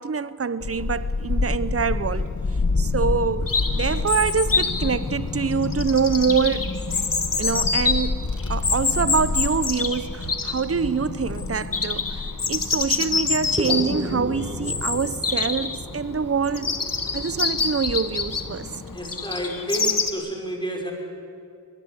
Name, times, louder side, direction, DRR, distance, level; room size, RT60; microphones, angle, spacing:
voice 1, 0.0-2.3 2.8-6.7 7.4-8.2 8.5-12.0 12.5-16.7 17.1-18.7, right 5 dB, 45° right, 0.7 m, -25 dB
Child speech kid speaking / Wind, 0.6-19.0, left 3 dB, 60° left, 1.5 m, -30 dB
Chirp tweet, 3.5-20.1, left 4 dB, 85° left, 1.5 m, -27 dB
sound 1, 13.6-18.4, equal, 20° right, 1.7 m, -36 dB
voice 2, 18.9-20.9, right 1 dB, 15° left, 5.8 m, -30 dB
23.5 x 21.0 x 8.2 m
wide cardioid pair, 45°, 32 cm